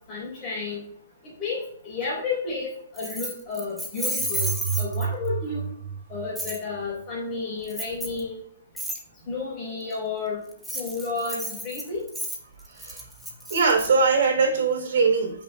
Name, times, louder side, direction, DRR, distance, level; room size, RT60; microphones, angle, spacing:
voice 1, 0.1-0.9 1.2-5.7 6.1-8.4 9.3-10.4 10.7-12.1, left 4 dB, 20° left, -4 dB, 3.7 m, -32 dB
Keys jangling, 3.0-5.3 6.4-6.6 7.7-8.2 8.8-9.0 10.5-13.9, right 1 dB, ahead, 0.9 m, -32 dB
sound 1, 4.2-7.1, right 7 dB, 80° right, 0.9 m, -31 dB
voice 2, 12.7-13.0 13.5-15.4, right 4 dB, 55° right, 2 dB, 3.0 m, -22 dB
14.0 x 5.7 x 2.3 m, 0.66 s
hypercardioid pair, 170°, 0 cm